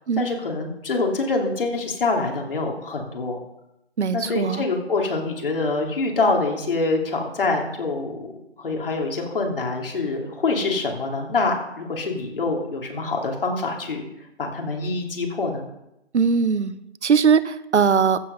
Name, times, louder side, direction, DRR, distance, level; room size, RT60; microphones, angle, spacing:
voice 1, 0.2-3.4 4.1-8.3 8.6-14.0 14.4-15.6, left 3 dB, 55° left, 1 dB, 3.0 m, -25 dB
voice 2, 4.0-4.6 16.1-18.2, right 6 dB, 90° right, 15 dB, 1.0 m, -20 dB
15.0 x 7.8 x 5.4 m, 0.87 s
hypercardioid pair, 170°, 34 cm